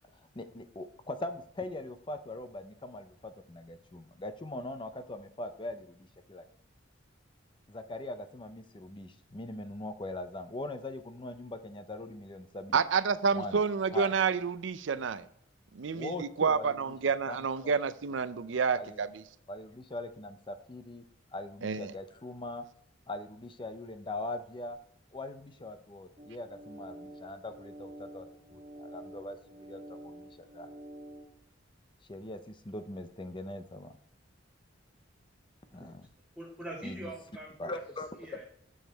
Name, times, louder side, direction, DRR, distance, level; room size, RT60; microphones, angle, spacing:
voice 1, 0.1-6.4 7.7-12.8 13.3-13.6 13.9-14.1 15.9-17.7 18.7-19.0 19.5-21.1 21.3-22.7 23.1-24.8 25.1-30.7 32.1-34.0 35.7-36.0 36.8-37.1 37.6-38.1, left 2 dB, 25° left, 9 dB, 0.6 m, -41 dB
voice 2, 12.7-15.2 15.7-19.2 21.6-21.9, right 5 dB, 75° right, 14 dB, 0.5 m, -29 dB
sound 1, 26.2-31.3, right 1 dB, 35° right, 1.5 m, -48 dB
voice 3, 36.4-37.6 38.2-38.4, right 1 dB, ahead, -9 dB, 2.1 m, -43 dB
9.1 x 7.2 x 3.5 m, 0.70 s
head